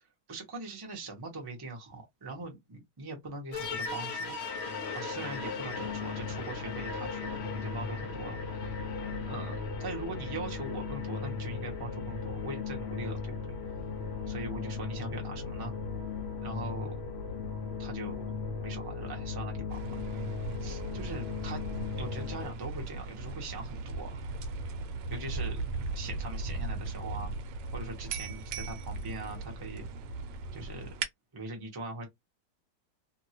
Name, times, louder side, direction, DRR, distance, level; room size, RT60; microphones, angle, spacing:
voice 1, 0.3-4.3 4.9-8.7 9.3-13.3 14.3-15.7 16.4-17.0 17.8-18.3 18.6-20.0 20.6-21.6 22.0-24.2 25.1-25.6 25.9-27.3 27.7-29.8 30.5-30.9 31.3-32.1, right 2 dB, 20° right, 0.6 m, -41 dB
sound 1, 3.5-22.5, left 5 dB, 60° left, 0.7 m, -37 dB
sound 2, 19.7-31.1, right 3 dB, 85° right, 1.2 m, -38 dB
2.8 x 2.6 x 2.8 m
omnidirectional pair, 1.9 m